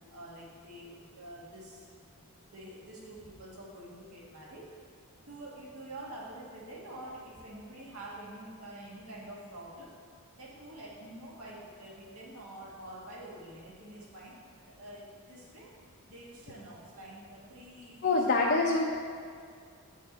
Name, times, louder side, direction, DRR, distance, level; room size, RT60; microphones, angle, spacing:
voice 1, 0.1-4.7 5.2-9.9 10.3-15.7 16.1-18.4, right 1 dB, 75° right, -5 dB, 1.9 m, -47 dB
voice 2, 18.0-18.8, left 3 dB, 45° left, -2 dB, 0.6 m, -25 dB
8.3 x 6.2 x 4.0 m, 2.2 s
head